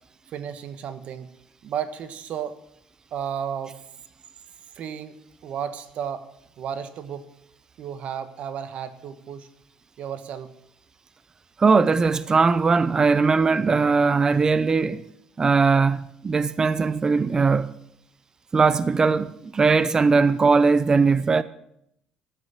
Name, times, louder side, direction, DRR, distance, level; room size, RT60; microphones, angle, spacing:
voice 1, 0.3-1.3 1.6-2.6 3.1-3.8 4.7-6.3 6.6-7.3 7.8-9.5 10.0-10.5, right 8 dB, 60° right, 1.3 m, -33 dB
voice 2, 11.6-15.0 15.4-17.7 18.5-21.4, right 4 dB, 25° right, 0.5 m, -20 dB
13.5 x 8.1 x 7.3 m
cardioid pair, 95°, 2 cm